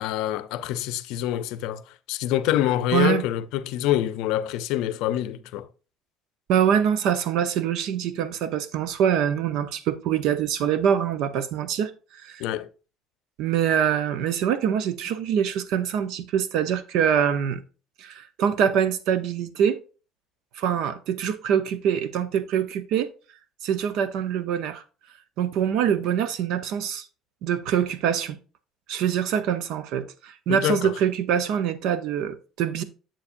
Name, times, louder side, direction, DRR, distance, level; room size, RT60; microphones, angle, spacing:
voice 1, 0.0-5.7 12.4-12.7 30.5-30.9, left 13 dB, 80° left, 0.5 m, -26 dB
voice 2, 2.9-3.2 6.5-11.9 12.2-12.4 13.4-17.6 18.0-19.8 20.5-23.1 23.6-24.8 25.4-27.0 27.4-28.4 28.9-32.8, right 8 dB, 65° right, 0.8 m, -24 dB
7.5 x 7.1 x 2.6 m
cardioid pair, 165°, 0 cm